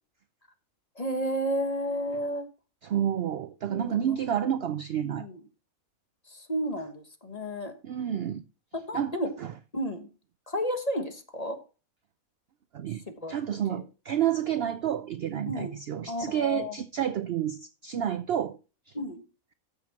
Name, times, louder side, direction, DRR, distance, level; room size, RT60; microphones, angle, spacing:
voice 1, 1.0-2.4 3.7-4.2 5.0-5.4 6.3-7.7 8.7-9.3 9.7-10.1 10.5-11.6 13.1-13.3 13.7-13.8 15.5-15.7 16.1-16.7 18.9-19.2, equal, 30° left, 1.3 m, -32 dB
voice 2, 2.8-5.3 7.8-8.4 8.9-9.5 12.7-13.0 13.3-18.6 18.9-19.0, right 10 dB, 60° right, 0.6 m, -30 dB
14.0 x 6.5 x 2.9 m
omnidirectional pair, 1.5 m